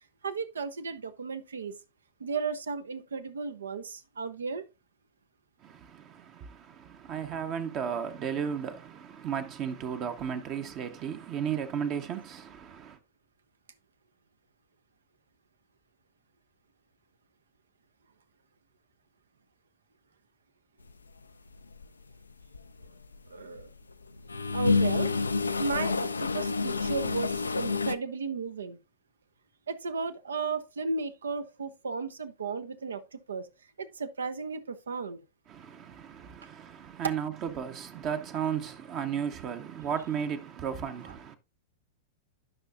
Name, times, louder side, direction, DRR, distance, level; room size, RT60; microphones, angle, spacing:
voice 1, 0.2-1.8 2.2-4.6 23.3-23.7 24.5-25.1 25.6-28.8 29.7-33.5 33.8-35.2, right 4 dB, 75° right, 0.8 m, -34 dB
voice 2, 5.6-13.0 35.5-41.4, right 8 dB, 35° right, 0.9 m, -34 dB
sound 1, 21.5-21.8 22.3-23.6 24.0-27.9, left 4 dB, 85° left, 0.4 m, -28 dB
12.5 x 5.6 x 2.4 m
figure-of-eight pair, 100°, 0 cm